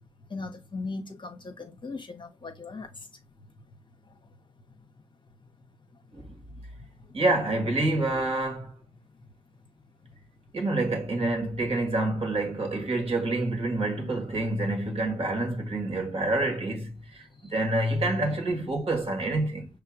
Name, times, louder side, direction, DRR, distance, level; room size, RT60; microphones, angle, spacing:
voice 1, 0.3-2.9, left 3 dB, 30° left, 1.2 m, -38 dB
voice 2, 7.1-8.7 10.5-16.9 17.5-19.7, right 2 dB, 45° right, 2.2 m, -27 dB
5.6 x 3.4 x 2.5 m
supercardioid pair, 55°, 15 cm